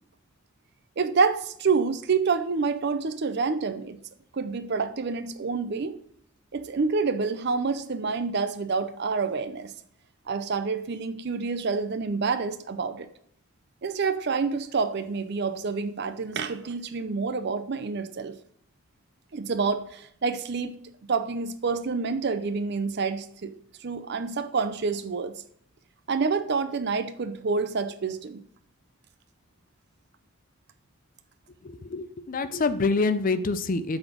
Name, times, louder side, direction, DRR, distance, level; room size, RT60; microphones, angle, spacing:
voice 1, 1.0-4.0 4.3-6.0 6.5-9.7 10.3-13.1 13.8-18.4 19.3-20.8 21.1-23.5 23.8-25.4 26.1-28.4, right 4 dB, 50° right, 11 dB, 0.5 m, -28 dB
voice 2, 31.6-34.0, left 3 dB, 40° left, 12 dB, 0.5 m, -26 dB
7.8 x 4.1 x 6.2 m, 0.66 s
head